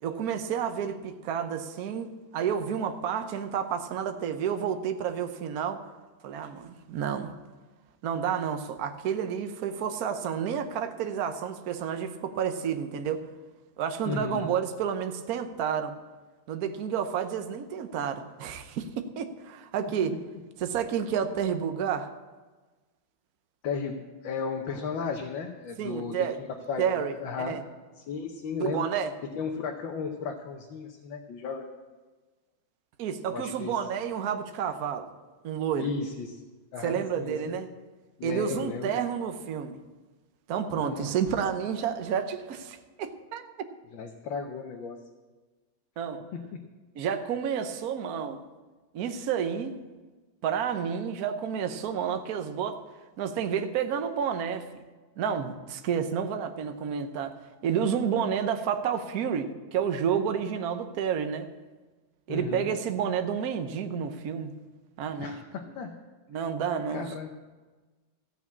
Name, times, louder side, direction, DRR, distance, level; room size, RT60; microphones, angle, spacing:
voice 1, 0.0-5.8 6.2-7.3 8.0-13.2 13.8-15.9 16.5-20.1 20.6-22.1 25.8-26.4 26.8-27.6 28.6-29.1 33.0-35.1 35.4-35.9 36.8-37.7 38.2-39.8 40.5-43.7 46.0-46.2 46.9-48.4 48.9-49.8 50.4-52.8 53.2-54.8 55.2-57.3 57.6-61.5 62.3-64.5 65.0-65.4 66.3-67.1, right 8 dB, 60° right, 8 dB, 1.2 m, -30 dB
voice 2, 14.0-14.5 19.8-20.2 23.6-27.6 28.0-28.9 29.3-31.7 33.3-33.8 35.7-36.4 36.7-37.6 38.2-38.9 40.7-41.2 43.9-45.0 46.3-46.6 62.3-62.7 65.2-65.9 66.9-67.4, left 5 dB, 85° left, 2 dB, 1.7 m, -35 dB
14.5 x 6.0 x 8.4 m, 1.3 s
omnidirectional pair, 2.0 m